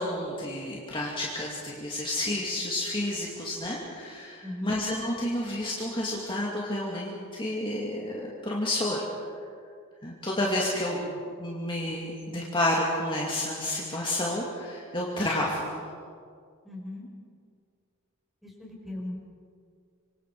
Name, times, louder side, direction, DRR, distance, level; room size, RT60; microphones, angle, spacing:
voice 1, 0.0-9.1 10.0-11.0 11.4-15.6, left 1 dB, 25° left, -4 dB, 2.5 m, -30 dB
voice 2, 4.4-4.8 11.0-11.2 16.6-17.1 18.4-19.2, left 1 dB, ahead, -2 dB, 5.2 m, -38 dB
27.0 x 24.5 x 4.9 m, 2.2 s
head